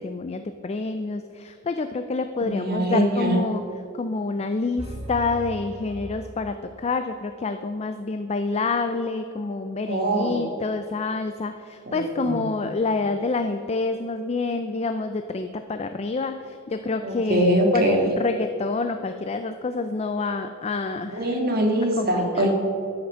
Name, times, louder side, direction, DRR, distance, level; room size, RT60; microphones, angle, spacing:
voice 1, 0.0-3.7 3.9-21.4 22.0-22.5, left 3 dB, 30° left, 8 dB, 0.4 m, -28 dB
voice 2, 2.4-3.4 9.9-10.4 11.9-12.4 17.0-18.0 21.1-22.5, right 1 dB, 45° right, 1 dB, 1.9 m, -23 dB
sound 1, 4.8-6.9, right 1 dB, 25° right, 1.3 m, -38 dB
13.0 x 5.9 x 6.2 m, 2.5 s
head